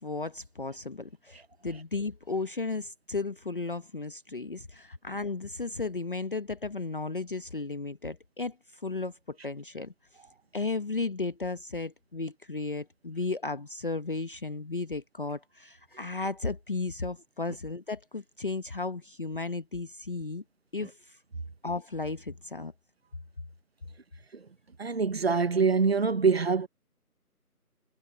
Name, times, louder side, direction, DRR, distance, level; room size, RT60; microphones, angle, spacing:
voice 1, 0.0-9.9 10.5-20.4 20.7-21.2 21.6-22.7, left 3 dB, 35° left, 1.2 m, -34 dB
voice 2, 24.8-26.7, right 5 dB, 40° right, 1.3 m, -25 dB
figure-of-eight pair, 170°, 46 cm